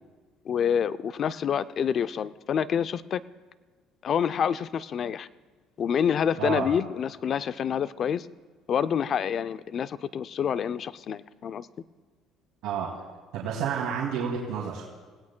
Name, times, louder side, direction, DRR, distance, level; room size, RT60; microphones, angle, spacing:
voice 1, 0.5-3.2 4.0-5.3 5.8-8.3 8.7-11.7, left 8 dB, 45° left, 14 dB, 0.4 m, -27 dB
voice 2, 6.4-6.7 12.6-12.9 13.3-14.8, right 7 dB, 80° right, -3 dB, 2.3 m, -29 dB
29.5 x 17.0 x 2.2 m, 1.4 s
cardioid pair, 125°, 0 cm